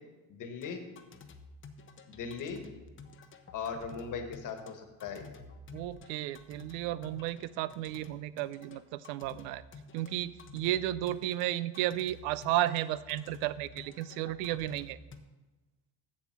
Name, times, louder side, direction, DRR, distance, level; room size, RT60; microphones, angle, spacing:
voice 1, 0.3-0.8 2.1-2.6 3.5-5.3, left 6 dB, 50° left, 6 dB, 1.4 m, -39 dB
sound 1, 0.6-15.2, left 3 dB, 30° left, 0.8 m, -51 dB
voice 2, 5.7-9.6 9.9-15.0, right 14 dB, 90° right, 17 dB, 0.6 m, -33 dB
7.5 x 7.4 x 6.0 m, 1.1 s
cardioid pair, 115°, 41 cm